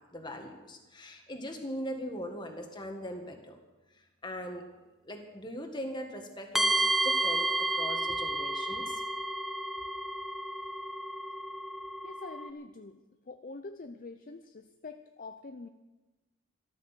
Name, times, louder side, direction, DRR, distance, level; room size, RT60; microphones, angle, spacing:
voice 1, 0.1-3.6 4.2-4.6 5.1-9.0, equal, 20° left, 4 dB, 1.8 m, -40 dB
sound 1, 6.5-12.5, right 2 dB, ahead, 0.8 m, -31 dB
voice 2, 12.0-13.0 13.3-15.7, left 3 dB, 40° left, 8 dB, 0.5 m, -45 dB
13.5 x 13.5 x 6.8 m, 1.1 s
head